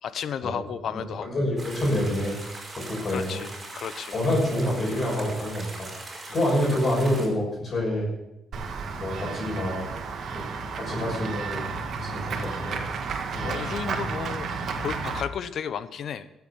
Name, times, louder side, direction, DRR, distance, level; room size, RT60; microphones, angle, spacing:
voice 1, 0.0-1.4 3.1-4.1 13.4-14.5 14.8-16.3, left 8 dB, 65° left, 14 dB, 0.8 m, -33 dB
voice 2, 0.9-2.4 2.8-3.4 4.1-5.9 6.3-8.1 9.0-9.9 10.3-10.5 10.8-11.6 12.0-12.8 13.3-13.6, left 1 dB, 40° left, -1 dB, 5.9 m, -27 dB
sound 1, 1.6-7.3, right 2 dB, 25° right, 5.0 m, -40 dB
Run / Walk footsteps / Bell, 8.5-15.2, right 5 dB, 60° right, 1.8 m, -32 dB
13.5 x 8.0 x 7.3 m, 0.93 s
cardioid pair, 90°, 0 cm